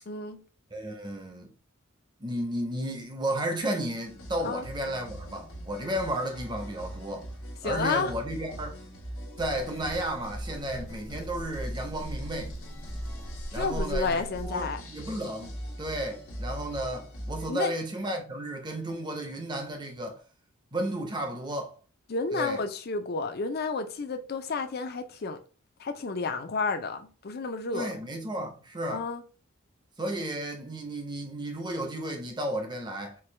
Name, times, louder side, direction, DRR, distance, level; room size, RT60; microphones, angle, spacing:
voice 1, 0.1-0.4 4.4-4.6 7.6-8.1 13.5-14.8 17.5-17.7 22.1-25.4 25.8-27.9 28.9-29.2, left 4 dB, 45° left, 0.5 m, -31 dB
voice 2, 0.7-1.5 2.2-7.3 7.6-8.8 9.4-12.6 13.5-20.2 20.7-21.8 22.3-22.6 27.7-29.1 30.0-33.2, right 1 dB, 20° right, 0.7 m, -33 dB
sound 1, 4.0-17.5, equal, 85° left, 1.1 m, -41 dB
Rattle (instrument), 9.4-14.7, equal, 75° right, 1.7 m, -40 dB
4.5 x 2.2 x 3.2 m
head